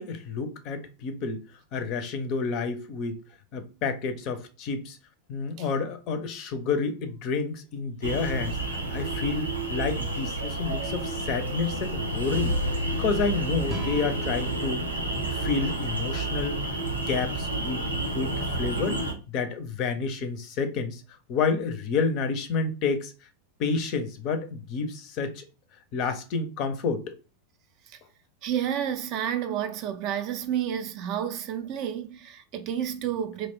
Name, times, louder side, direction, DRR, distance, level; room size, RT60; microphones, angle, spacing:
voice 1, 0.0-1.4 1.7-3.2 3.5-5.0 5.3-12.5 13.0-14.8 15.3-16.6 17.1-19.0 19.3-21.0 21.3-23.1 23.6-25.4 25.9-27.0, left 4 dB, 40° left, 0.5 m, -29 dB
sound 1, 8.0-19.1, right 2 dB, 85° right, 0.6 m, -30 dB
sound 2, 11.7-16.1, left 3 dB, 90° left, 0.6 m, -35 dB
sound 3, 13.7-17.0, right 1 dB, 15° right, 0.7 m, -41 dB
voice 2, 28.4-33.5, right 9 dB, 40° right, 0.4 m, -30 dB
2.4 x 2.1 x 3.3 m
figure-of-eight pair, 90°, 0 cm